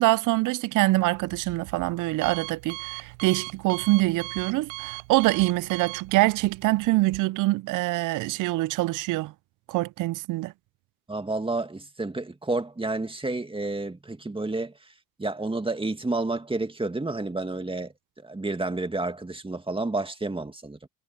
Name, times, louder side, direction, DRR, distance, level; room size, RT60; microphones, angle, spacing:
voice 1, 0.0-9.3 9.7-10.5, right 19 dB, 55° right, 0.5 m, -24 dB
Alarm, 0.8-7.2, right 28 dB, 90° right, 6.1 m, -40 dB
voice 2, 11.1-14.7 15.2-20.9, right 2 dB, 15° right, 2.3 m, -30 dB
supercardioid pair, 65°, 37 cm